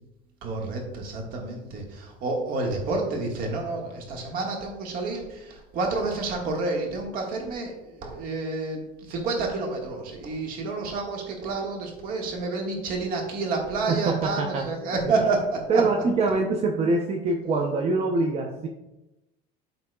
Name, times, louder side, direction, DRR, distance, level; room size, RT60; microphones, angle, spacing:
voice 1, 0.4-8.8 9.1-15.8, right 3 dB, 55° right, 1 dB, 1.6 m, -29 dB
voice 2, 13.9-14.7 15.7-18.7, right 3 dB, 35° right, 2 dB, 0.7 m, -24 dB
12.0 x 4.2 x 2.3 m, 0.97 s
cardioid pair, 140°, 18 cm